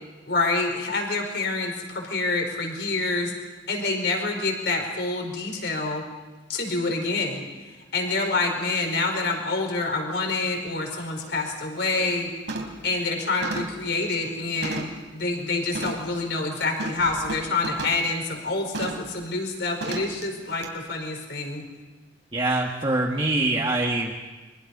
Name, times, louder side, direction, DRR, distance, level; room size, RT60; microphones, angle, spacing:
voice 1, 0.3-3.3 3.7-6.0 6.5-12.3 12.8-21.6, left 3 dB, 65° left, 3 dB, 5.0 m, -27 dB
sound 1, 10.7-10.8 11.2-11.5 11.8-12.2 12.5-12.9 13.4-15.1 15.7-16.1 16.8-18.1 18.7-19.1 19.8-20.2 20.6-20.7, right 2 dB, 80° right, 4.0 m, -34 dB
voice 2, 22.3-24.1, right 2 dB, 25° right, -2 dB, 1.7 m, -24 dB
29.5 x 24.5 x 5.5 m, 1.3 s
head